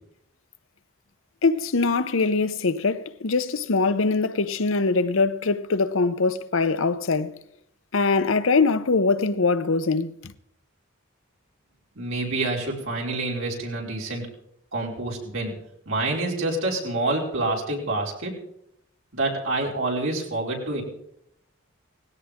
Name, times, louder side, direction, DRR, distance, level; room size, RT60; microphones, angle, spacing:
voice 1, 1.4-7.3 7.9-10.3, left 4 dB, 70° left, 0.8 m, -22 dB
voice 2, 11.9-14.3 14.7-15.5 15.8-18.3 19.1-20.8, right 2 dB, 85° right, 5.0 m, -27 dB
19.0 x 16.5 x 3.7 m
head